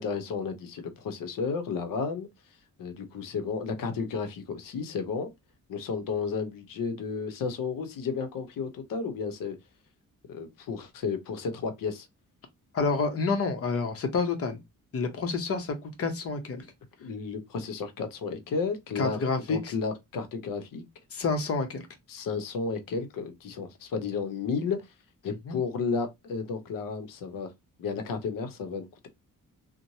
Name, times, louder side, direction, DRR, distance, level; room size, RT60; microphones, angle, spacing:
voice 1, 0.0-2.3 2.8-5.3 5.7-9.6 10.3-12.1 17.0-19.2 19.5-20.8 22.1-24.8 25.2-27.5 27.8-29.1, left 5 dB, 75° left, 0.8 m, -32 dB
voice 2, 12.7-14.6 14.9-16.6 19.0-19.7 21.1-21.9 25.5-25.6, left 4 dB, 45° left, 0.8 m, -28 dB
3.0 x 2.1 x 2.6 m
cardioid pair, 120°, 33 cm